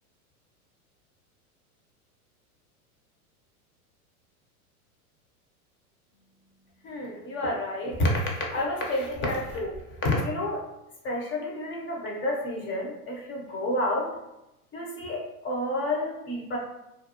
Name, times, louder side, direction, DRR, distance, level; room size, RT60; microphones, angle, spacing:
voice 1, 6.8-10.6 11.0-14.1 14.7-16.6, left 1 dB, 25° left, -1 dB, 0.7 m, -29 dB
2.5 x 2.1 x 2.8 m, 0.92 s
hypercardioid pair, 105°, 44 cm